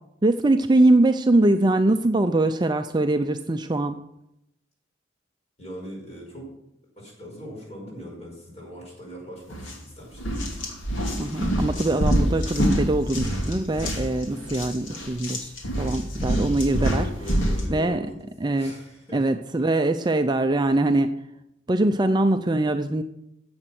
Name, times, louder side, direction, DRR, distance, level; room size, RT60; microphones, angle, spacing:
voice 1, 0.2-4.0 11.2-17.1 17.7-18.1 18.4-18.7 19.1-21.1 21.7-23.0, right 2 dB, 20° right, 8 dB, 0.5 m, -22 dB
voice 2, 5.6-6.5 7.0-10.3 17.2-18.3 18.5-19.2 20.0-20.1, equal, 35° left, -2 dB, 5.3 m, -40 dB
sound 1, 9.5-9.7 10.1-17.7, equal, 80° left, 2.6 m, -26 dB
14.0 x 8.0 x 6.0 m, 0.84 s
head